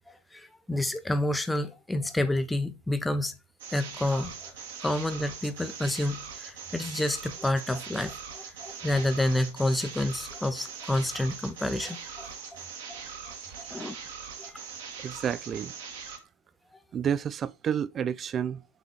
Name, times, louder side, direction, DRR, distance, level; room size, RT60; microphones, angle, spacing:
voice 1, 0.1-3.3 3.7-4.5 4.8-12.6 12.9-14.0 14.4-14.6 15.2-15.3, left 1 dB, 5° left, 0.7 m, -29 dB
sound 1, 3.6-16.2, right 6 dB, 55° right, 1.5 m, -41 dB
voice 2, 15.0-15.7 16.9-18.6, right 8 dB, 25° right, 0.4 m, -30 dB
6.8 x 3.6 x 4.2 m
figure-of-eight pair, 90°, 0 cm